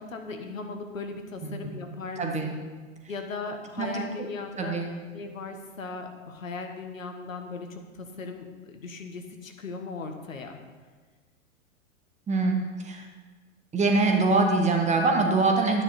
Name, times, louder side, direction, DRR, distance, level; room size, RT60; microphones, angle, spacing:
voice 1, 0.0-2.6 3.1-4.8 5.1-10.6, left 4 dB, 75° left, 5 dB, 1.6 m, -38 dB
voice 2, 2.2-2.6 3.8-3.9 4.2-4.3 4.6-4.9 12.3-12.5 12.8-13.0 13.7-15.8, right 3 dB, 15° right, 2 dB, 1.6 m, -23 dB
12.5 x 9.8 x 4.3 m, 1.4 s
figure-of-eight pair, 95°, 40 cm